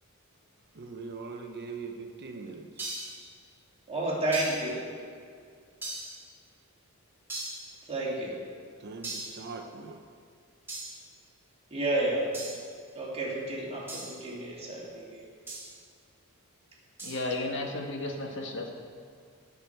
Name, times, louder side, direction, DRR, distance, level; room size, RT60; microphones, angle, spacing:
voice 1, 0.7-2.8 8.8-10.0, right 4 dB, 50° right, 4 dB, 0.7 m, -41 dB
sound 1, 2.8-3.3 4.3-4.7 5.8-6.2 7.3-7.7 9.0-9.4 10.7-11.0 12.3-12.7 13.9-14.2 15.5-15.8 17.0-17.3, right 2 dB, 10° right, 2.8 m, -39 dB
voice 2, 3.9-4.8 7.9-8.3 11.7-12.2 12.9-15.2, right 2 dB, 30° right, -5 dB, 2.6 m, -31 dB
voice 3, 17.0-18.7, left 2 dB, 55° left, 2 dB, 1.5 m, -33 dB
18.0 x 6.9 x 4.6 m, 2.2 s
head